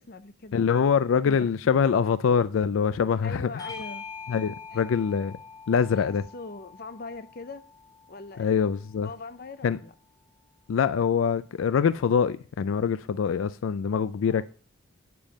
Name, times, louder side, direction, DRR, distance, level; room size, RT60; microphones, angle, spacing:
voice 1, 0.0-0.7 1.2-1.5 3.2-4.1 4.7-4.8 5.9-7.7 8.1-8.5 9.0-9.9 14.3-14.4, left 3 dB, 50° left, 0.7 m, -41 dB
voice 2, 0.5-3.5 4.3-5.4 5.7-6.2 8.4-9.1 9.6-9.8 10.7-14.4, left 6 dB, 85° left, 0.4 m, -24 dB
Bell / Doorbell, 3.6-8.4, left 5 dB, 20° left, 1.6 m, -44 dB
8.9 x 6.9 x 5.2 m
head